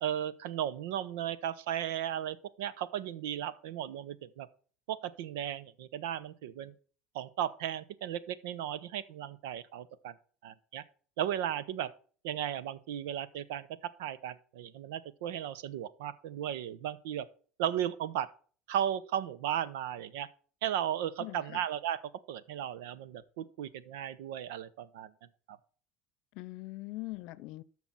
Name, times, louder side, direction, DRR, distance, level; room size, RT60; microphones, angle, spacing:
voice 1, 0.0-4.5 4.9-6.7 7.1-10.1 10.4-10.8 11.2-11.9 12.2-13.7 14.0-17.3 17.6-18.3 18.7-20.3 20.6-22.0 22.3-25.1 25.5-25.6, right 10 dB, 80° right, 0.9 m, -35 dB
voice 2, 21.2-21.6 26.3-27.6, left 20 dB, 65° left, 0.7 m, -42 dB
13.0 x 6.0 x 4.1 m
supercardioid pair, 105°, 0 cm